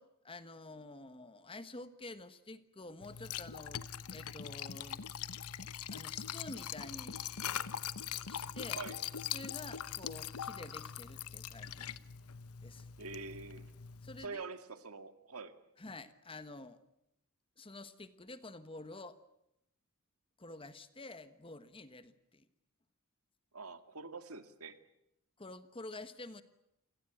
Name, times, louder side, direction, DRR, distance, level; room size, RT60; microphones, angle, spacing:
voice 1, 0.0-3.8 4.1-5.0 5.9-7.4 8.3-8.8 9.3-11.9 12.6-12.9 14.0-14.4 15.8-16.8 17.6-19.2 20.4-22.5 25.4-26.4, left 2 dB, 25° left, 12 dB, 1.3 m, -49 dB
Liquid, 3.0-14.2, left 8 dB, 85° left, 0.9 m, -42 dB
voice 2, 13.0-13.7 14.2-15.5 23.5-24.8, right 4 dB, 80° right, 9 dB, 2.1 m, -45 dB
28.5 x 17.5 x 9.1 m, 0.82 s
head